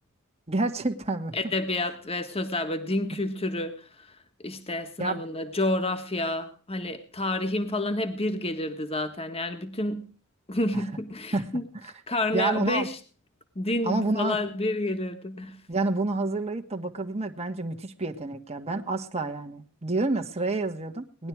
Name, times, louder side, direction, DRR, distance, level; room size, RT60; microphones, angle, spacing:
voice 1, 0.5-1.4 5.0-5.2 10.7-10.8 11.3-11.5 11.8-11.9 12.3-12.9 13.8-14.4 15.7-21.3, right 2 dB, 30° right, 1.6 m, -29 dB
voice 2, 1.3-4.1 4.4-10.1 10.5-11.6 12.1-12.9 13.6-15.6, left 1 dB, 25° left, 1.6 m, -29 dB
19.0 x 11.5 x 4.7 m
head